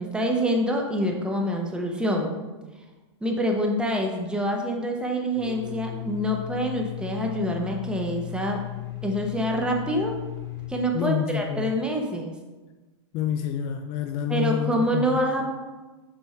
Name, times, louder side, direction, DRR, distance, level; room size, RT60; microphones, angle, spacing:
voice 1, 0.0-2.4 3.2-8.6 9.0-10.1 10.7-12.3 14.3-15.5, equal, 5° right, 1 dB, 0.8 m, -26 dB
Domestic sounds home sounds, 5.3-10.7, left 15 dB, 80° left, 1.6 m, -36 dB
voice 2, 10.9-11.7 13.1-15.2, left 9 dB, 40° left, 6 dB, 0.3 m, -28 dB
6.1 x 3.5 x 4.3 m, 1.2 s
hypercardioid pair, 125°, 15 cm